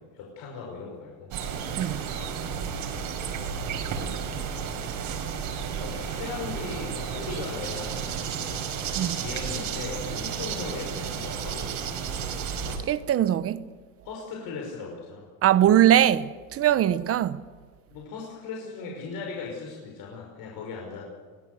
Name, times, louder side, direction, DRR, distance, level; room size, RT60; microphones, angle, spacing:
voice 1, 0.0-1.3 3.9-4.3 5.8-8.2 9.2-11.7 14.0-15.3 17.9-21.1, left 4 dB, 50° left, 5.6 m, -38 dB
sound 1, 1.3-12.8, right 7 dB, 50° right, 5.2 m, -32 dB
voice 2, 12.9-13.6 15.4-17.4, right 11 dB, 35° right, 0.9 m, -21 dB
24.0 x 18.0 x 7.9 m
supercardioid pair, 135°, 43 cm